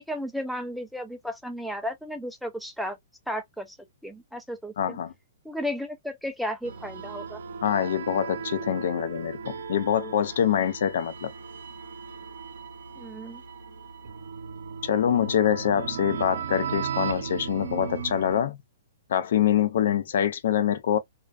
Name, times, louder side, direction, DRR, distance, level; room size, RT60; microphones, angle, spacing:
voice 1, 0.0-3.0 3.3-3.8 4.0-5.0 5.4-7.4 13.0-13.4, equal, ahead, 0.3 m, -34 dB
voice 2, 4.8-5.1 7.6-11.3 14.8-18.6 19.1-21.0, left 9 dB, 65° left, 0.5 m, -25 dB
sound 1, 6.6-18.4, right 6 dB, 75° right, 0.6 m, -36 dB
2.3 x 2.3 x 2.3 m
hypercardioid pair, 145°, 0 cm